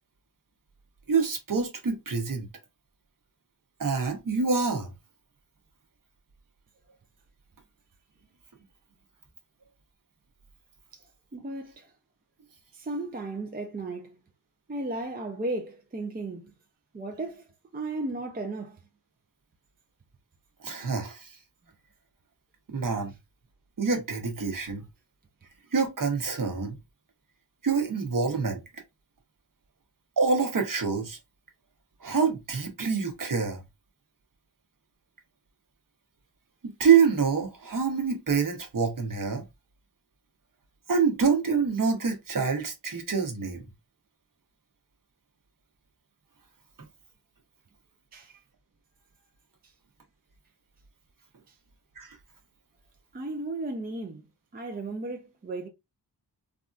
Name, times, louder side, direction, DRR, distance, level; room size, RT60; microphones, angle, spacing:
voice 1, 1.1-2.5 3.8-4.9 20.6-21.3 22.7-23.1 23.8-24.8 25.7-26.8 27.6-28.6 30.2-31.2 32.0-33.6 36.6-39.4 40.9-43.6 52.0-52.2, right 5 dB, 50° right, 1.0 m, -26 dB
voice 2, 11.3-11.9 12.7-14.2 14.7-16.5 16.9-17.5 17.7-18.8 48.1-48.3 53.1-54.3 54.5-55.7, right 2 dB, 25° right, 0.5 m, -35 dB
3.4 x 2.5 x 2.4 m
wide cardioid pair, 95°, 42 cm